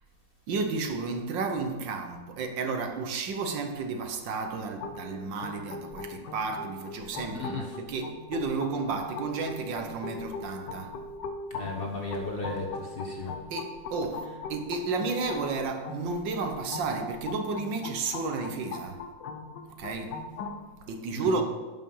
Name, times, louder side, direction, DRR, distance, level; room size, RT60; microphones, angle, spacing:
voice 1, 0.5-11.0 13.5-19.0 19.8-20.2 20.9-21.4, right 4 dB, 75° right, 1.7 m, -32 dB
sound 1, 4.8-20.6, left 4 dB, 70° left, 1.5 m, -40 dB
voice 2, 11.5-13.3 21.1-21.4, left 3 dB, 35° left, 1.2 m, -35 dB
11.5 x 5.8 x 5.5 m
omnidirectional pair, 2.0 m